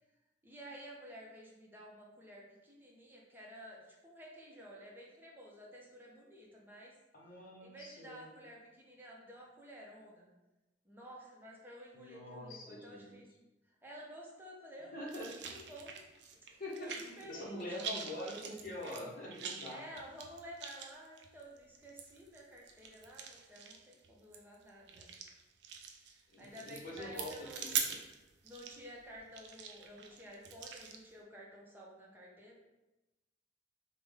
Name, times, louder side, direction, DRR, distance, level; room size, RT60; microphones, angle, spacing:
voice 1, 0.4-6.9 7.6-10.3 10.8-13.3 13.7-15.3 15.5-16.0 16.8-17.8 19.7-25.1 26.4-27.8 28.4-32.6, equal, 10° right, -3 dB, 0.6 m, -52 dB
voice 2, 7.1-8.3 11.9-13.2 14.9-15.5 16.5-19.8 26.3-28.0, left 1 dB, 50° left, -3 dB, 0.8 m, -45 dB
sound 1, 15.1-17.3 17.6-31.0, right 7 dB, 65° right, 0.4 m, -44 dB
3.3 x 2.1 x 3.4 m, 1.0 s
head